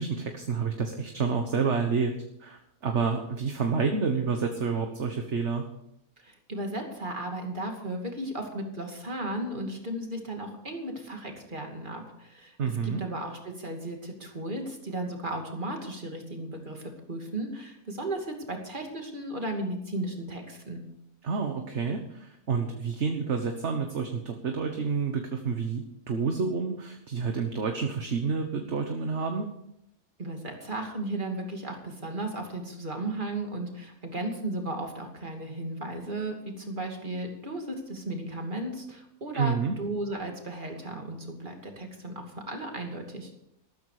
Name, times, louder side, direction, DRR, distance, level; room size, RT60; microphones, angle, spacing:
voice 1, 0.0-2.1 2.4-5.6 12.6-13.0 21.2-29.5 39.3-39.8, right 5 dB, 50° right, 4 dB, 1.5 m, -29 dB
voice 2, 6.2-12.6 12.8-20.8 30.2-43.3, right 1 dB, 35° right, 2 dB, 2.7 m, -35 dB
13.5 x 13.5 x 4.9 m, 0.77 s
omnidirectional pair, 1.6 m